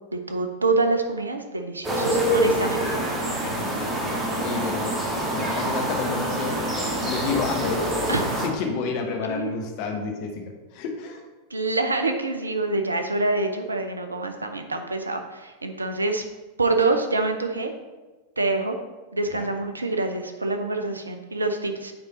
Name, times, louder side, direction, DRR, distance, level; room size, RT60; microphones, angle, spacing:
voice 1, 0.1-3.0 8.1-8.2 9.1-9.5 11.5-16.2 16.6-17.7 18.4-18.8 19.1-21.9, right 3 dB, 80° right, 6 dB, 0.7 m, -26 dB
sound 1, 1.8-8.5, right 1 dB, 20° right, 1.5 m, -25 dB
voice 2, 3.4-3.9 4.4-5.0 5.3-6.7 7.0-7.8 8.4-10.4 10.7-11.2 19.3-19.5, left 4 dB, 45° left, 3 dB, 1.1 m, -30 dB
9.0 x 3.8 x 4.1 m, 1.2 s
figure-of-eight pair, 90°, 0 cm